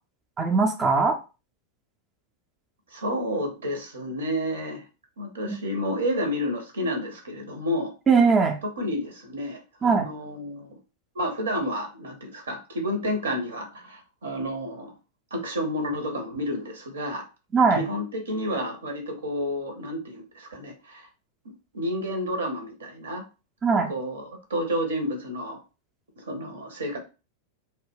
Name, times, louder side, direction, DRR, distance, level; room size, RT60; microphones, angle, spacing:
voice 1, 0.4-1.2 5.5-5.6 8.1-8.6 9.8-10.1 17.5-17.8 23.6-23.9, right 5 dB, 20° right, 3 dB, 0.4 m, -20 dB
voice 2, 2.9-4.8 5.2-7.9 8.8-10.8 11.1-14.9 15.3-17.2 17.7-21.1 21.7-23.2 23.9-24.2 24.5-25.6 26.2-27.0, equal, 70° right, 4 dB, 0.7 m, -30 dB
2.2 x 2.1 x 3.3 m, 0.31 s
figure-of-eight pair, 90°, 0 cm